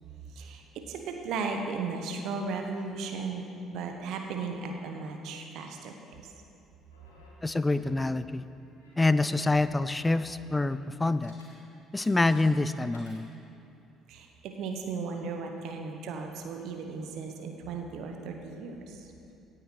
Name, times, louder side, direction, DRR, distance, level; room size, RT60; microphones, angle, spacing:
voice 1, 0.3-6.3 14.1-19.1, right 4 dB, 65° right, 3 dB, 1.0 m, -36 dB
sound 1, 6.9-8.1 8.5-9.0 9.5-10.8 11.1-11.5 11.7-13.4 13.9-14.0, left 2 dB, 85° left, 2.0 m, -53 dB
voice 2, 7.4-8.5 9.0-11.3 11.9-13.3, left 2 dB, 15° left, 13 dB, 0.4 m, -26 dB
17.5 x 8.9 x 3.2 m, 2.7 s
hypercardioid pair, 50°, 0 cm